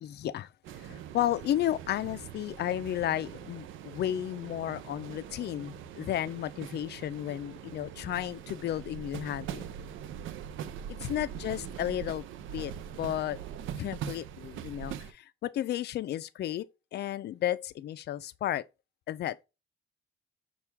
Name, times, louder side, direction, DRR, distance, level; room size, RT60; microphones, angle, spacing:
voice 1, 0.0-9.6 10.9-12.3 12.5-13.4 13.8-18.6 19.1-19.4, left 12 dB, 55° left, 0.4 m, -33 dB
sound 1, 0.6-15.1, right 9 dB, 80° right, 0.5 m, -42 dB
5.8 x 2.3 x 3.4 m
cardioid pair, 90°, 20 cm